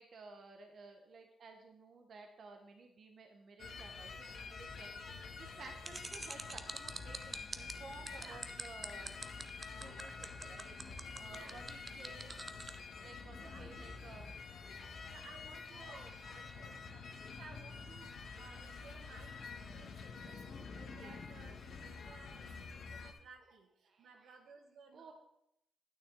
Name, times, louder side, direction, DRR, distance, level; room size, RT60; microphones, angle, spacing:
voice 1, 0.0-9.2 9.7-10.8 11.2-12.6 13.0-14.4 14.7-14.9 15.7-17.1 20.9-21.2 22.2-22.4 22.8-22.9 23.9-24.4 24.9-25.1, right 4 dB, 60° right, 4 dB, 1.1 m, -55 dB
sound 1, 3.6-23.1, left 4 dB, 70° left, 1.2 m, -48 dB
sound 2, 5.8-12.7, right 3 dB, 25° right, 0.6 m, -45 dB
voice 2, 11.3-12.3 13.4-13.9 15.0-25.1, right 4 dB, 85° right, 4 dB, 1.3 m, -58 dB
9.3 x 9.2 x 3.8 m, 0.78 s
cardioid pair, 95°, 0 cm